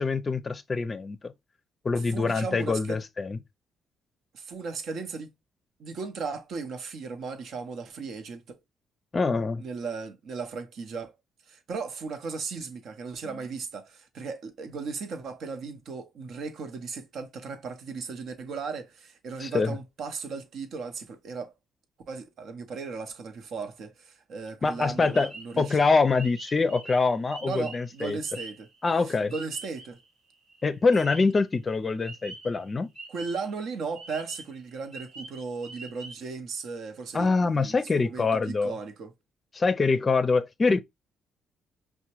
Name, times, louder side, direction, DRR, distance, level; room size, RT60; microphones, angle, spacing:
voice 1, 0.0-1.3 1.8-3.4 9.1-9.6 19.4-19.8 24.6-25.3 25.6-28.2 28.8-29.3 30.6-32.9 37.1-38.7 39.5-40.8, left 4 dB, 30° left, 0.5 m, -25 dB
voice 2, 1.9-3.0 4.3-5.3 5.8-8.6 9.6-11.1 11.5-21.5 22.1-25.8 27.4-28.7 29.0-30.0 33.1-37.3 37.6-39.1, right 4 dB, 70° right, 0.7 m, -36 dB
sound 1, 24.7-30.1 30.3-31.4 32.0-33.6 34.0-36.1, right 3 dB, 85° right, 1.3 m, -44 dB
5.4 x 2.2 x 2.9 m
cardioid pair, 90°, 0 cm